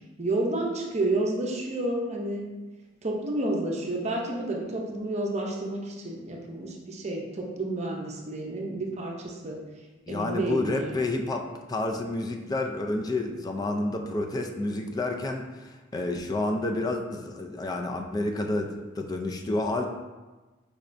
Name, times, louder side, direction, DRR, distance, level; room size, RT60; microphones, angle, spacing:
voice 1, 0.2-2.4 3.0-9.6 10.1-11.0, right 2 dB, 35° right, 0 dB, 0.6 m, -30 dB
voice 2, 10.1-19.9, left 2 dB, 20° left, 3 dB, 0.3 m, -29 dB
4.8 x 3.2 x 2.5 m, 1.2 s
head